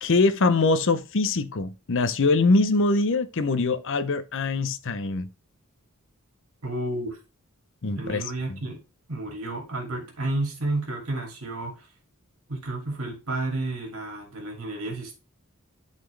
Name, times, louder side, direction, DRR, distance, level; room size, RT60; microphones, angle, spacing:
voice 1, 0.0-5.3 7.8-8.2 8.5-8.6, left 3 dB, 60° left, 0.7 m, -23 dB
voice 2, 6.6-7.2 8.0-8.8 9.1-11.8 12.5-15.1, right 2 dB, 65° right, 2.5 m, -31 dB
11.5 x 4.2 x 3.2 m
head